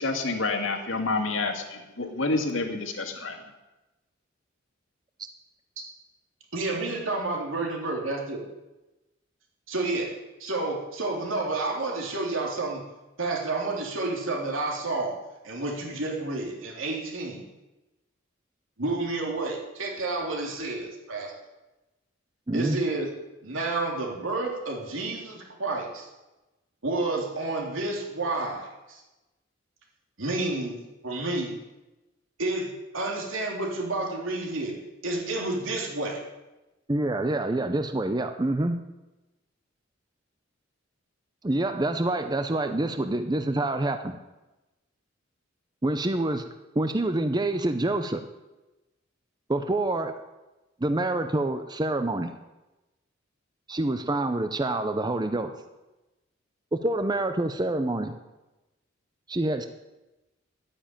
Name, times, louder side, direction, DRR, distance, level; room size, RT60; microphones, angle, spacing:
voice 1, 0.0-3.3, left 3 dB, 75° left, 3 dB, 2.2 m, -28 dB
voice 2, 6.5-8.5 9.7-12.8 13.2-15.2 15.4-17.4 18.8-21.3 22.5-23.1 23.4-26.1 26.8-29.0 30.2-30.8 31.0-31.6 32.4-34.8 35.0-36.2, right 2 dB, 80° right, 0 dB, 3.2 m, -30 dB
voice 3, 22.5-22.8 36.9-38.8 41.4-44.2 45.8-46.5 46.8-48.2 49.5-50.2 50.8-52.3 53.7-55.5 56.7-58.2 59.3-59.7, right 2 dB, 20° right, 8 dB, 0.7 m, -26 dB
11.5 x 9.8 x 8.9 m, 1.0 s
head